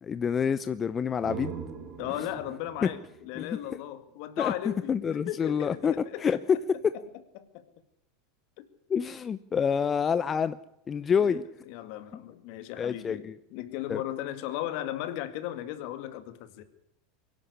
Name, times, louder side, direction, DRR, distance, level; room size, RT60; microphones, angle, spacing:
voice 1, 0.0-1.6 2.8-2.9 3.4-3.6 4.4-4.5 4.9-6.6 8.9-10.6 10.9-11.4 12.8-13.3 13.9-14.0, left 7 dB, 25° left, 0.7 m, -27 dB
sound 1, 0.9-4.6, right 8 dB, 45° right, 4.2 m, -43 dB
voice 2, 2.0-6.4 7.3-7.6 8.6-8.7 11.2-11.4 11.7-16.6, left 13 dB, 60° left, 2.2 m, -36 dB
23.5 x 11.5 x 9.8 m
hypercardioid pair, 90°, 0 cm